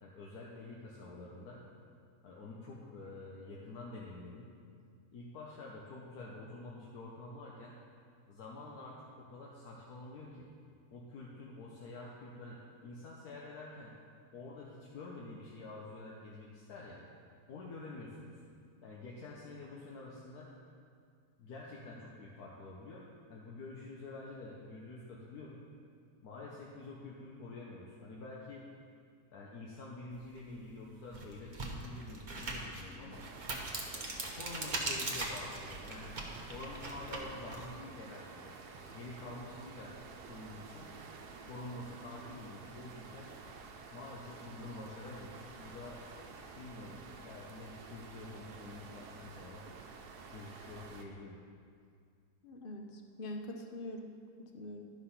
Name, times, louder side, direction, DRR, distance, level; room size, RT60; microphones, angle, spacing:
voice 1, 0.0-1.6 2.2-4.5 5.1-7.7 8.3-10.5 10.9-12.6 12.8-13.9 14.3-17.0 17.5-18.3 18.8-20.5 21.4-23.0 23.3-25.6 26.2-28.6 29.3-33.2 33.9-36.2 36.5-38.5 38.9-39.9 40.2-40.9 41.5-43.3 43.9-46.0 46.5-49.6 50.3-51.4, left 2 dB, 75° left, -3 dB, 1.4 m, -48 dB
sound 1, 30.4-30.5 31.0-37.7, right 2 dB, 35° right, 0.9 m, -40 dB
sound 2, 33.1-51.0, right 4 dB, 80° right, 1.3 m, -51 dB
voice 2, 52.4-54.1 54.5-54.8, left 1 dB, 45° left, 3 dB, 0.7 m, -43 dB
11.5 x 4.9 x 5.6 m, 2.2 s
omnidirectional pair, 1.7 m